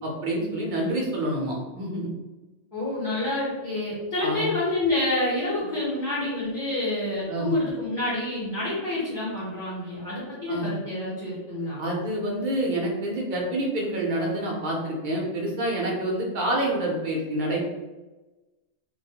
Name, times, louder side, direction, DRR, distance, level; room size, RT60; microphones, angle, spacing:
voice 1, 0.0-2.1 4.2-4.5 7.3-7.5 10.5-10.7 11.8-17.7, right 1 dB, 60° right, -2 dB, 0.5 m, -27 dB
voice 2, 2.7-11.8, left 2 dB, 25° left, -9 dB, 0.5 m, -28 dB
2.2 x 2.0 x 2.7 m, 1.1 s
omnidirectional pair, 1.2 m